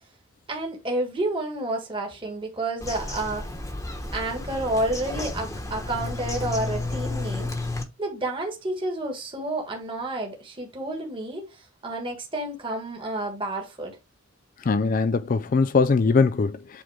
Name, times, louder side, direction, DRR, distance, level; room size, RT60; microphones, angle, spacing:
voice 1, 0.5-3.5 4.1-7.5 8.0-14.0, right 2 dB, 25° right, 1.6 m, -30 dB
Bird vocalization bird call bird song, 2.8-7.8, left 2 dB, 15° left, 1.2 m, -32 dB
voice 2, 14.7-16.8, left 4 dB, 40° left, 0.4 m, -21 dB
7.9 x 3.8 x 3.4 m
head